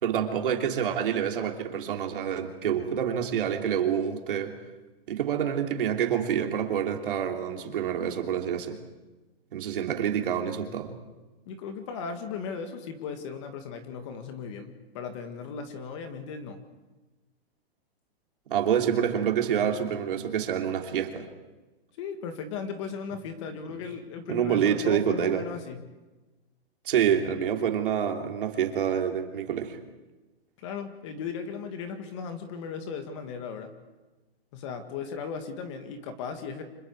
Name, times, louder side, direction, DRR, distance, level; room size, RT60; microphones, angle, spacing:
voice 1, 0.0-4.6 5.1-8.8 9.5-10.9 18.5-21.3 24.3-25.4 26.8-29.8, right 8 dB, 55° right, 3 dB, 3.0 m, -27 dB
voice 2, 11.5-16.6 22.0-25.8 30.6-33.7 34.5-36.6, left 6 dB, 30° left, 7 dB, 1.8 m, -37 dB
29.5 x 26.0 x 4.8 m, 1.1 s
hypercardioid pair, 175°, 31 cm